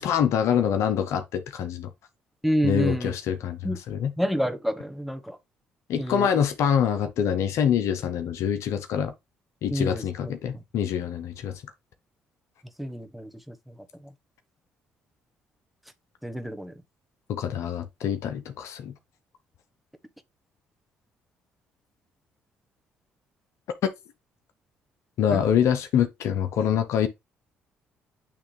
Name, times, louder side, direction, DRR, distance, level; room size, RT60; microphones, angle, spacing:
voice 1, 0.0-1.9 2.6-3.6 3.9-4.1 5.9-9.1 9.6-11.6 17.3-18.9 25.2-27.1, left 8 dB, 70° left, 0.9 m, -25 dB
voice 2, 2.4-3.1 3.6-3.8 4.2-5.4 6.0-6.3 9.7-10.0 12.8-13.7 16.2-16.7 25.3-25.4, equal, ahead, 1.3 m, -28 dB
8.7 x 3.4 x 3.3 m
hypercardioid pair, 55°, 5 cm